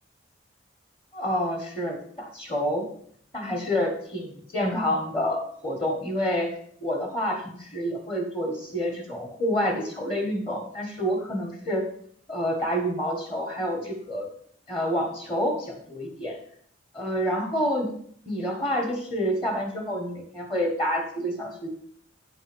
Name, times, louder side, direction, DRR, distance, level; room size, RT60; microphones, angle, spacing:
voice 1, 1.1-2.8 3.3-6.5 6.8-11.8 12.3-14.3 14.7-16.4 16.9-17.9 18.3-21.7, equal, 25° left, 1 dB, 1.4 m, -28 dB
8.9 x 3.9 x 6.1 m, 0.63 s
head